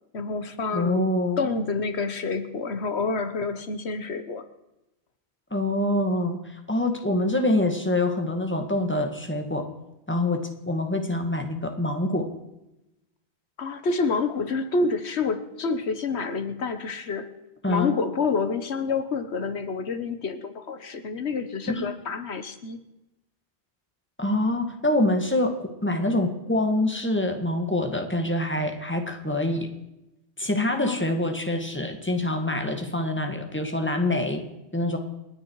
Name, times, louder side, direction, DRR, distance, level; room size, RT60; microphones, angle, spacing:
voice 1, 0.1-1.0 1.4-4.5 13.6-17.3 17.7-22.8 30.8-31.2, left 4 dB, 85° left, 10 dB, 1.5 m, -28 dB
voice 2, 0.7-1.4 5.5-9.7 10.1-12.3 17.6-17.9 21.7-21.9 24.2-29.7 30.4-34.4 34.7-35.0, left 1 dB, 10° left, 5 dB, 2.0 m, -25 dB
28.5 x 10.0 x 4.8 m, 0.93 s
omnidirectional pair, 1.1 m